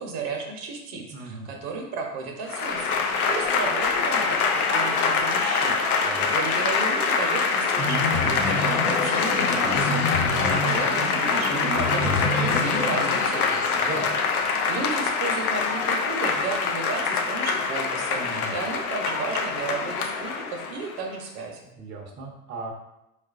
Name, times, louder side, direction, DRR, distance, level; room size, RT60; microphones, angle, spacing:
voice 1, 0.0-14.2 14.7-21.7, right 4 dB, 50° right, 2 dB, 0.8 m, -34 dB
voice 2, 1.1-1.5 6.0-6.3 10.0-10.4 13.8-14.2 18.2-18.5 21.8-22.7, right 2 dB, 25° right, -1 dB, 0.6 m, -37 dB
Applause / Crowd, 2.4-21.0, left 5 dB, 85° left, 0.6 m, -24 dB
sound 1, 7.8-13.3, left 2 dB, 60° left, 1.0 m, -29 dB
4.3 x 2.4 x 2.4 m, 0.88 s
hypercardioid pair, 85°, 43 cm